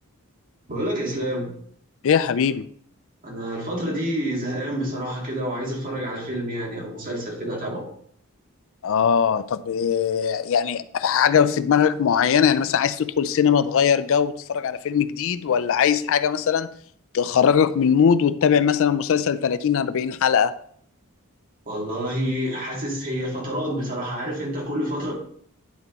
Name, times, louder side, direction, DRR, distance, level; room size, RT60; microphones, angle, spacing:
voice 1, 0.7-1.5 3.2-7.9 21.7-25.1, equal, 40° right, -3 dB, 2.7 m, -28 dB
voice 2, 2.0-2.7 8.8-16.7 17.1-20.5, left 7 dB, 65° left, 15 dB, 0.4 m, -20 dB
10.0 x 4.2 x 4.0 m, 0.62 s
head